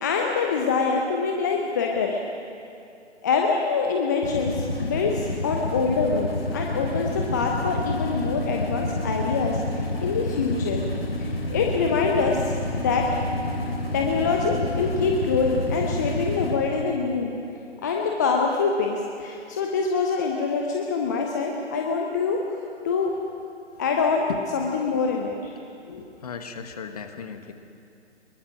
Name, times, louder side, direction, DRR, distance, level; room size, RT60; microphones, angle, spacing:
voice 1, 0.0-2.2 3.2-10.8 11.2-12.5 12.8-13.1 13.9-17.3 17.8-23.1 23.8-24.3 24.5-25.5 25.9-26.0, left 5 dB, 15° left, 1 dB, 0.8 m, -25 dB
sound 1, 4.2-16.5, left 1 dB, 55° left, 4.3 m, -29 dB
voice 2, 26.0-27.5, left 6 dB, 35° left, 7 dB, 1.5 m, -36 dB
23.5 x 22.0 x 6.2 m, 2.6 s
figure-of-eight pair, 140°, 35 cm